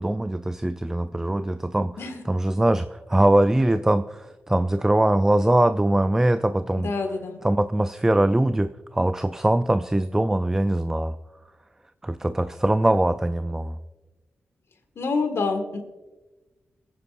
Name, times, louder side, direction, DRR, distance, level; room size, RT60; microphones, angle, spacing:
voice 1, 0.0-6.9 7.4-11.2 12.0-13.8, right 1 dB, 10° right, 11 dB, 0.3 m, -22 dB
voice 2, 6.8-7.4 15.0-15.8, left 4 dB, 70° left, 6 dB, 1.8 m, -26 dB
22.0 x 9.5 x 2.5 m, 1.2 s
cardioid pair, 75°, 5 cm